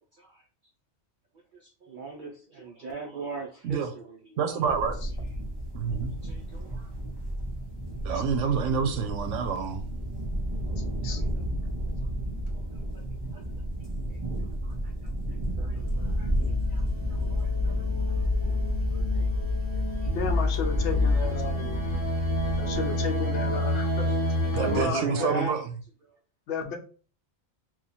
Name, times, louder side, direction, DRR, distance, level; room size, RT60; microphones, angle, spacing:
voice 1, 1.5-4.6 6.2-6.9 8.1-8.5 11.0-11.2 12.5-12.6 13.3-13.4 14.6-15.1 15.6-16.8 17.1-18.0 18.5-18.6 18.9-19.3 20.0-20.1 21.1-21.2 22.1-22.2 23.8-24.2 24.5-25.6, right 3 dB, 60° right, 0.5 m, -40 dB
voice 2, 4.4-5.0 5.7-6.1 8.0-9.8 24.5-25.7, right 6 dB, 85° right, 1.0 m, -28 dB
sound 1, 4.6-23.1, right 1 dB, 25° right, 0.9 m, -33 dB
sound 2, 15.7-24.8, left 2 dB, 25° left, 0.9 m, -27 dB
voice 3, 20.1-21.8 22.6-24.1 24.6-25.4 26.5-26.8, left 5 dB, 75° left, 1.0 m, -33 dB
3.0 x 2.3 x 4.1 m
omnidirectional pair, 1.2 m